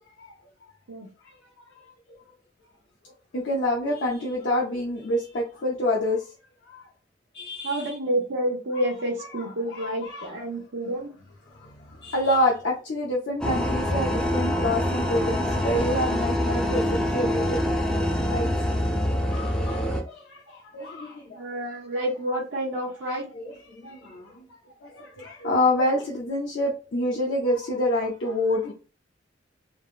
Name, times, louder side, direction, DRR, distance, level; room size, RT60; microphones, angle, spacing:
voice 1, 3.3-6.3 6.7-6.8 7.3-7.9 9.4-9.5 9.7-10.3 11.6-16.8 17.1-17.6 18.3-18.5 19.2-21.4 23.3-24.4 24.8-28.7, left 1 dB, 65° left, -3 dB, 0.6 m, -27 dB
voice 2, 7.6-11.1 21.3-23.3, right 1 dB, 70° right, -3 dB, 0.6 m, -29 dB
sound 1, 13.4-20.0, left 1 dB, 5° left, 0.4 m, -25 dB
3.3 x 2.0 x 2.4 m, 0.34 s
head